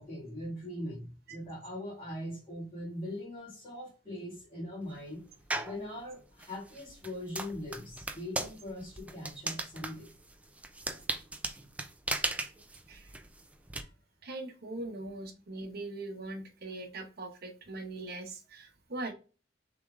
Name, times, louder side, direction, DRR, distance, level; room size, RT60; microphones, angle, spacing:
voice 1, 0.0-5.3 5.6-10.1 13.8-13.9, left 1 dB, 30° left, 2.0 m, -41 dB
sound 1, 5.5-5.8 6.4-13.8, right 2 dB, 10° right, 0.5 m, -37 dB
voice 2, 14.2-19.1, right 2 dB, 55° right, 0.9 m, -41 dB
6.2 x 3.5 x 2.4 m
head